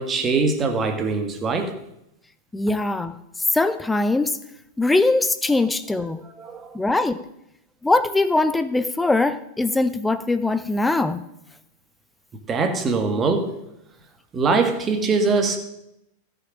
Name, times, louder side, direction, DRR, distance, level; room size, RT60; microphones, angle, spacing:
voice 1, 0.0-1.8 6.0-6.1 6.4-6.8 12.5-13.5 14.3-15.6, right 4 dB, 20° right, 5 dB, 1.8 m, -22 dB
voice 2, 2.5-3.2 3.5-4.4 4.8-6.2 6.7-7.2 7.8-11.2, left 2 dB, 10° left, 12 dB, 0.6 m, -21 dB
13.5 x 6.7 x 6.2 m, 0.83 s
figure-of-eight pair, 90°, 0 cm